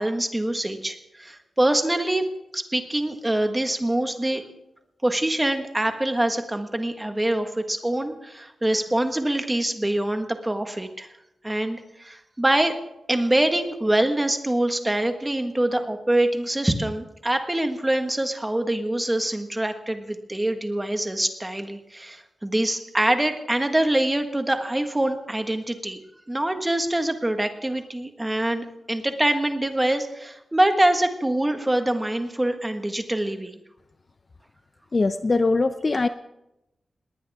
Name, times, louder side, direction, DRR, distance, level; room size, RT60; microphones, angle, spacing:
voice 1, 0.0-2.2 2.5-4.4 5.0-11.1 11.4-12.7 13.1-26.0 26.3-33.6, right 1 dB, 10° right, 6 dB, 1.6 m, -24 dB
voice 2, 34.9-36.1, left 3 dB, 30° left, 10 dB, 0.6 m, -21 dB
20.5 x 19.0 x 3.6 m, 0.88 s
wide cardioid pair, 170°, 0 cm